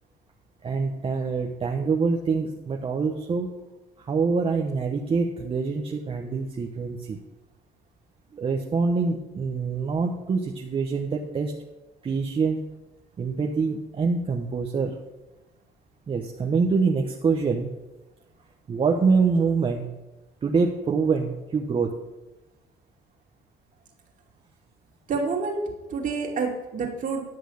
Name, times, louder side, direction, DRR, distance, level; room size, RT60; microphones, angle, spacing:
voice 1, 0.6-3.5 4.0-7.2 8.3-11.5 12.0-12.6 13.2-15.0 16.1-17.7 18.7-19.9 20.4-22.0, right 4 dB, 35° right, 2 dB, 0.9 m, -25 dB
voice 2, 25.1-25.6 25.9-27.2, right 4 dB, 50° right, 1 dB, 2.5 m, -28 dB
10.5 x 6.2 x 6.3 m, 1.1 s
cardioid pair, 110°, 17 cm